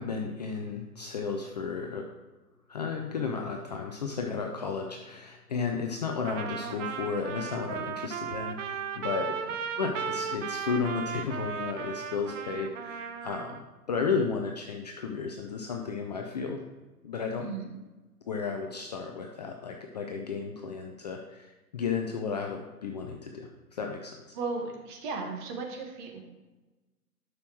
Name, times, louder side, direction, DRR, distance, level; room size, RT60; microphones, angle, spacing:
voice 1, 0.0-2.1 2.7-9.4 9.8-16.6 17.0-17.4 18.3-24.4, left 5 dB, 30° left, 2 dB, 0.5 m, -33 dB
Trumpet, 6.3-13.6, right 7 dB, 50° right, 0.8 m, -36 dB
voice 2, 24.3-26.2, right 4 dB, 30° right, 2 dB, 1.6 m, -35 dB
11.0 x 6.3 x 3.0 m, 1.2 s
figure-of-eight pair, 120°, 47 cm